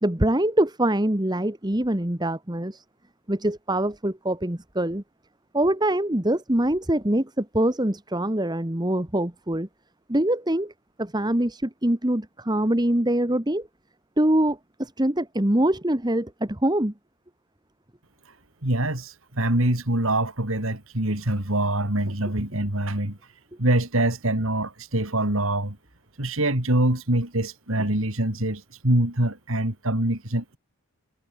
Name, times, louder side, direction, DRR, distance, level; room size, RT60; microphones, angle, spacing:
voice 1, 0.0-2.8 3.3-5.0 5.5-9.7 10.1-10.7 11.0-13.7 14.2-16.9, right 1 dB, 20° right, 1.3 m, -24 dB
voice 2, 18.6-23.2 23.6-25.8 26.2-30.6, right 1 dB, 65° right, 3.7 m, -24 dB
head